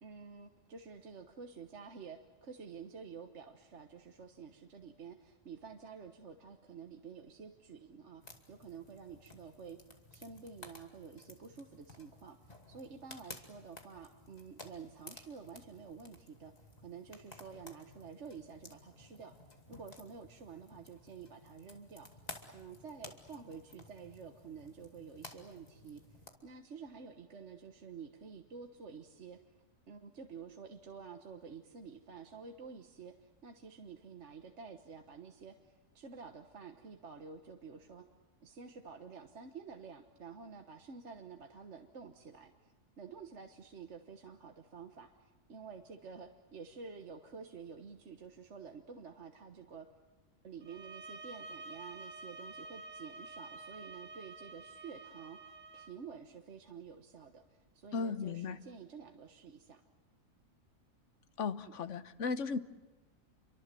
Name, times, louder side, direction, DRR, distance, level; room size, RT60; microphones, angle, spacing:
voice 1, 0.0-9.8 10.1-19.3 19.7-22.2 22.5-29.4 29.9-38.1 38.4-49.9 50.4-57.4 57.7-59.8 61.6-61.7, right 5 dB, 55° right, 5 dB, 1.6 m, -50 dB
sound 1, 8.2-26.3, left 2 dB, 30° left, 2.6 m, -55 dB
sound 2, 50.6-56.0, right 2 dB, 35° right, 1.3 m, -49 dB
voice 2, 57.9-58.6 61.4-62.6, left 5 dB, 65° left, 12 dB, 1.3 m, -36 dB
28.0 x 24.0 x 7.7 m, 1.2 s
omnidirectional pair, 1.4 m